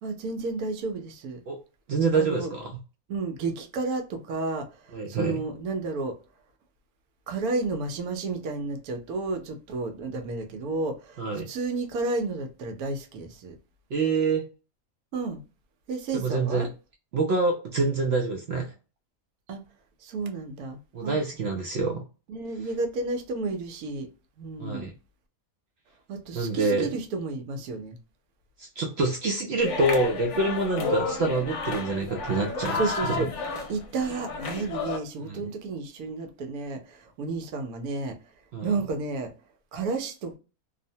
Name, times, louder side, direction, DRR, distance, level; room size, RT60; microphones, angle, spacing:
voice 1, 0.0-1.4 2.1-2.5 3.1-6.2 7.3-11.2 11.5-13.6 15.1-15.4 15.9-16.7 19.5-19.6 20.0-21.2 22.3-24.1 24.4-24.9 26.1-28.0 30.8-30.9 32.7-33.3 33.7-38.2 38.6-39.3 39.7-40.4, right 3 dB, 85° right, 1.1 m, -32 dB
voice 2, 1.9-2.7 4.9-5.4 11.2-11.5 13.9-14.4 16.1-16.7 17.1-18.7 20.9-22.0 24.6-24.9 26.3-26.9 28.6-33.2 35.2-35.4 38.5-38.7, right 3 dB, 65° right, 0.6 m, -26 dB
sound 1, 29.6-35.0, left 4 dB, 65° left, 0.9 m, -32 dB
2.7 x 2.1 x 2.6 m
omnidirectional pair, 1.5 m